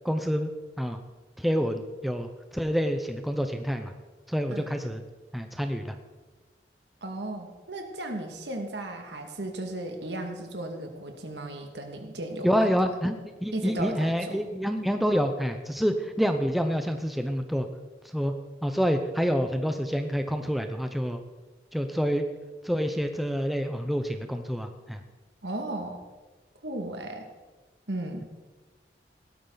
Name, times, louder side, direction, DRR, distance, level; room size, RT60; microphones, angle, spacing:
voice 1, 0.0-0.5 0.8-1.0 1.4-3.9 4.3-5.0 5.3-6.0 12.4-17.7 18.1-18.3 18.6-21.2 21.7-22.2 22.6-25.0, equal, ahead, 6 dB, 0.7 m, -27 dB
voice 2, 7.0-12.7 13.5-14.4 25.4-26.0 26.6-27.3 27.9-28.3, right 1 dB, 75° right, 3 dB, 2.1 m, -35 dB
17.0 x 12.5 x 4.0 m, 1.3 s
head